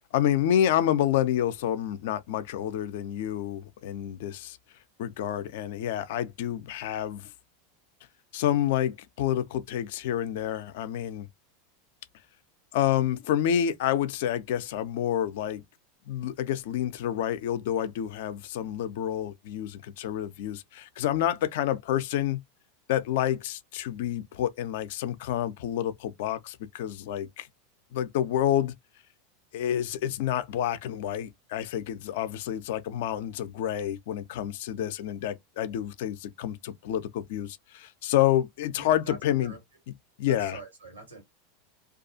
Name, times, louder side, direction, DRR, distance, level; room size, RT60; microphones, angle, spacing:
voice 1, 0.1-4.6 5.0-7.3 8.3-11.3 12.7-15.6 16.1-22.4 22.9-27.5 27.9-28.7 29.5-39.6 40.2-40.6, left 11 dB, 60° left, 0.4 m, -28 dB
voice 2, 38.8-39.6 40.3-41.2, right 3 dB, 80° right, 1.3 m, -45 dB
2.4 x 2.3 x 2.6 m
figure-of-eight pair, 85°, 0 cm